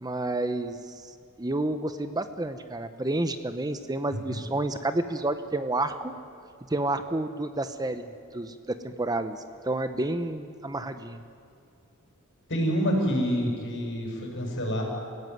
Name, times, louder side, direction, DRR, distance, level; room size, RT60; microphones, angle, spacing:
voice 1, 0.0-1.1 1.4-6.1 6.7-8.1 8.3-11.2, right 2 dB, 20° right, 10 dB, 0.8 m, -30 dB
voice 2, 12.5-14.8, equal, 55° left, 1 dB, 6.5 m, -27 dB
27.5 x 16.5 x 9.4 m, 2.5 s
head